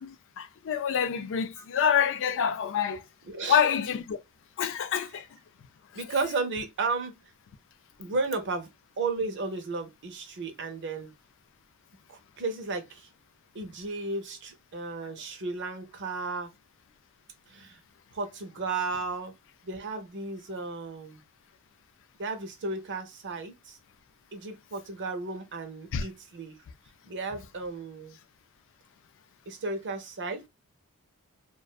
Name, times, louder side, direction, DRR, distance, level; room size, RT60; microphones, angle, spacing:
voice 1, 0.0-3.0 3.5-4.2 4.6-5.3 25.9-26.0, left 8 dB, 60° left, 0.4 m, -27 dB
voice 2, 3.2-3.6 5.9-7.1 8.0-8.7 9.0-11.1 12.1-13.1 13.5-16.5 17.5-17.8 18.1-19.3 19.6-21.2 22.2-23.8 24.3-26.6 27.1-28.2 29.5-30.5, right 3 dB, 55° right, 0.7 m, -34 dB
2.4 x 2.2 x 2.3 m
head